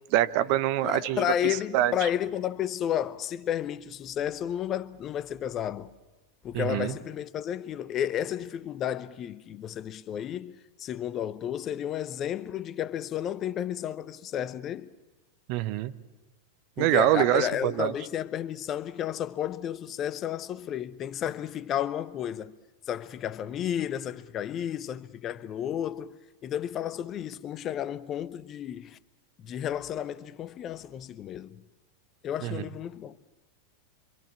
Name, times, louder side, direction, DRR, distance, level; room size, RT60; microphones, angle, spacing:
voice 1, 0.1-1.9 6.5-6.9 15.5-15.9 16.8-17.9 32.4-32.6, right 14 dB, 45° right, 0.9 m, -25 dB
voice 2, 0.8-5.9 6.4-14.9 16.8-22.5 22.9-26.2 26.4-29.0 29.4-31.6 32.2-33.2, left 10 dB, 30° left, 0.8 m, -32 dB
26.5 x 25.5 x 7.3 m
figure-of-eight pair, 90°, 0 cm